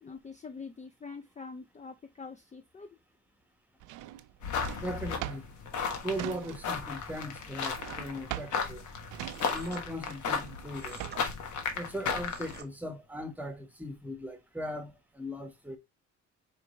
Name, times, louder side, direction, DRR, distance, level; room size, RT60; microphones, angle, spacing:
voice 1, 0.0-3.0, left 4 dB, 25° left, 0.5 m, -45 dB
Drawer open or close, 3.8-6.9 7.2-11.4, right 14 dB, 90° right, 0.5 m, -42 dB
sound 1, 4.4-12.6, left 6 dB, 75° left, 1.3 m, -35 dB
voice 2, 4.7-5.4 6.0-8.8 9.5-11.0 11.8-15.8, equal, 5° right, 1.2 m, -38 dB
sound 2, 9.3-9.9 10.7-11.2 12.1-12.7, right 5 dB, 35° right, 1.0 m, -49 dB
4.4 x 3.2 x 3.0 m
cardioid pair, 90°, 30 cm